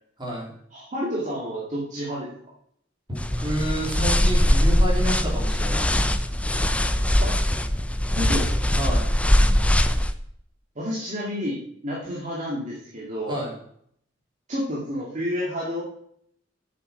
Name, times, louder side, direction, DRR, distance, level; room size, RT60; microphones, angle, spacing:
voice 1, 0.2-0.5 3.1-6.0 8.7-9.1 13.3-13.5, right 1 dB, 25° right, -4 dB, 3.4 m, -30 dB
voice 2, 0.7-2.3 7.2-7.4 8.2-8.7 10.8-13.4 14.5-15.8, equal, 40° right, -6 dB, 2.2 m, -30 dB
sound 1, 3.2-10.1, left 1 dB, 5° left, 0.5 m, -21 dB
7.5 x 7.1 x 5.7 m, 0.67 s
head